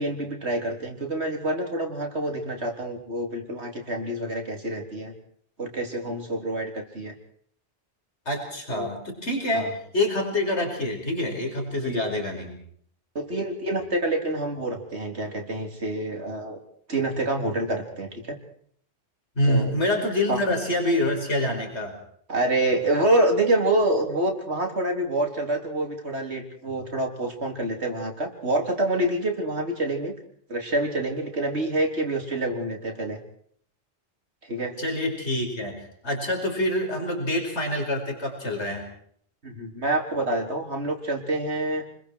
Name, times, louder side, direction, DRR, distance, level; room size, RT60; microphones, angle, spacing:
voice 1, 0.0-5.1 5.6-7.1 8.7-8.9 9.5-9.7 11.8-12.0 13.2-16.6 16.9-18.4 19.4-19.7 20.3-20.4 22.3-30.1 30.5-33.2 34.5-34.7 39.4-41.8, right 1 dB, 75° right, 3 dB, 4.0 m, -27 dB
voice 2, 8.3-9.7 9.9-12.6 19.4-22.0 34.8-38.8, left 1 dB, 85° left, 2 dB, 5.6 m, -26 dB
29.5 x 22.0 x 4.7 m, 0.62 s
omnidirectional pair, 1.1 m